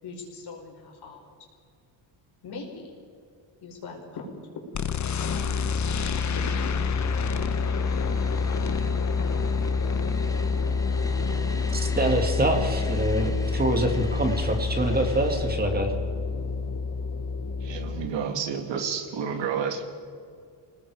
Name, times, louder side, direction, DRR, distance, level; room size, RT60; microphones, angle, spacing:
voice 1, 0.0-1.2 2.4-2.9 3.6-4.3 5.1-5.7 6.2-6.7 7.0-7.1 7.7-8.0 8.3-8.8 9.1-9.3, left 4 dB, 60° left, 0 dB, 5.5 m, -41 dB
sound 1, 4.7-18.1, left 4 dB, 40° left, 1.0 m, -27 dB
sound 2, 6.0-15.5, left 1 dB, 10° left, 1.2 m, -42 dB
voice 2, 11.7-15.9, right 1 dB, 20° right, 4 dB, 2.1 m, -25 dB
voice 3, 17.6-19.8, right 7 dB, 75° right, 5 dB, 2.5 m, -30 dB
28.0 x 19.0 x 4.9 m, 2.2 s
cardioid pair, 145°, 44 cm